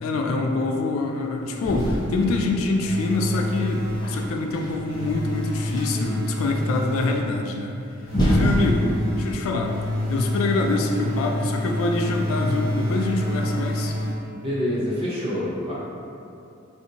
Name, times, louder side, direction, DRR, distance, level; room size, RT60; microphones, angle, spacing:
voice 1, 0.0-7.8 8.2-8.9 9.2-9.8 10.1-13.9, left 3 dB, 80° left, 3 dB, 0.3 m, -25 dB
sound 1, 1.6-2.9 3.7-6.1 7.5-7.6 8.0-10.2, equal, 20° left, 0.5 m, -26 dB
sound 2, 2.8-4.4 4.9-7.4 8.1-14.5, left 1 dB, 80° right, 1.5 m, -28 dB
voice 2, 14.3-15.7, equal, 30° right, -9 dB, 0.8 m, -27 dB
3.6 x 2.6 x 2.8 m, 2.6 s
head